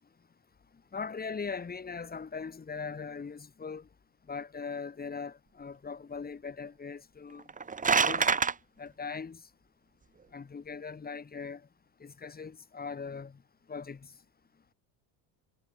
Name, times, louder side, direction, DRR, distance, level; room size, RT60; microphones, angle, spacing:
voice 1, 0.9-3.9 4.3-7.5 8.0-8.3 8.8-9.4 10.3-11.6 12.0-13.4 13.7-14.1, left 5 dB, 20° left, 6.5 m, -40 dB
sound 1, 7.4-8.5, right 5 dB, 20° right, 1.9 m, -26 dB
cardioid pair, 125°, 44 cm